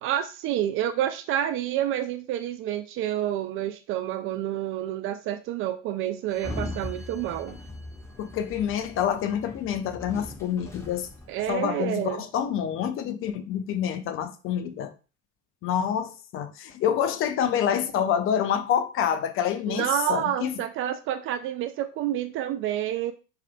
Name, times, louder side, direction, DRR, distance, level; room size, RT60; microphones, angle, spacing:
voice 1, 0.0-7.6 11.3-12.2 19.7-23.1, right 11 dB, 35° right, 0.4 m, -29 dB
Sliding door, 6.3-11.5, left 1 dB, 5° left, 1.3 m, -39 dB
voice 2, 8.2-11.1 11.5-14.9 15.6-20.5, left 9 dB, 35° left, 0.5 m, -27 dB
4.7 x 3.5 x 2.3 m
figure-of-eight pair, 75°, 38 cm